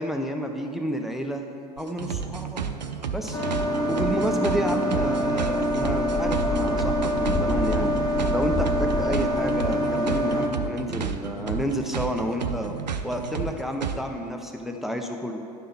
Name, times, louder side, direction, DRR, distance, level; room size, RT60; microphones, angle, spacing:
voice 1, 0.0-1.4 1.8-2.6 3.1-3.4 3.9-7.9 8.3-12.8 13.0-15.4, equal, ahead, 3 dB, 0.6 m, -30 dB
sound 1, 1.8-14.0, right 6 dB, 85° right, 0.5 m, -32 dB
sound 2, 3.3-10.5, left 1 dB, 20° left, 1.1 m, -25 dB
11.0 x 3.7 x 6.8 m, 2.5 s
figure-of-eight pair, 75°, 21 cm